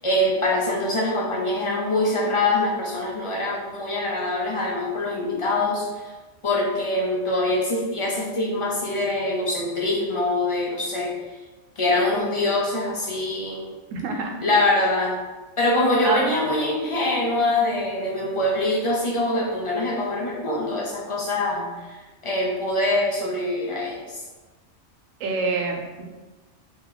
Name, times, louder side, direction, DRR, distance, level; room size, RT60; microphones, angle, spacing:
voice 1, 0.0-6.1 6.4-11.4 11.8-13.7 14.4-15.2 15.6-24.2, left 2 dB, 35° left, -3 dB, 0.5 m, -24 dB
voice 2, 13.9-14.3 16.0-16.2 25.2-26.0, right 4 dB, 85° right, 2 dB, 1.0 m, -26 dB
3.0 x 2.8 x 3.8 m, 1.2 s
omnidirectional pair, 1.3 m